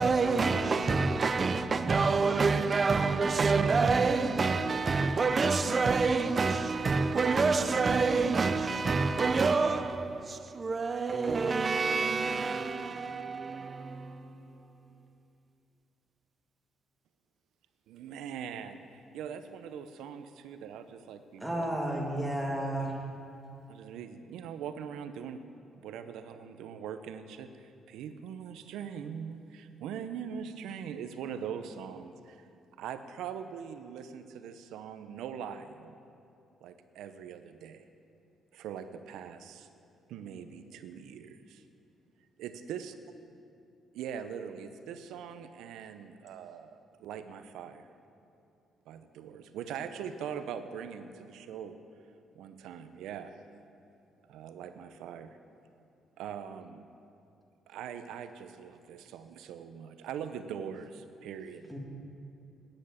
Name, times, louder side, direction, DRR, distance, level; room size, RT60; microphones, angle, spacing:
voice 1, 0.0-14.5, right 4 dB, 35° right, 0.6 m, -27 dB
voice 2, 17.9-21.6 23.7-25.4 25.8-32.5 32.8-35.9 36.6-37.8 38.5-39.7 40.1-41.6 42.4-42.9 43.9-47.9 48.9-51.8 52.4-53.3 54.3-55.4 56.2-56.8 57.7-61.7, right 8 dB, 85° right, 0.7 m, -42 dB
voice 3, 21.4-22.9 61.7-61.8, right 1 dB, ahead, 2.3 m, -32 dB
9.9 x 8.7 x 8.2 m
cardioid pair, 90°, 0 cm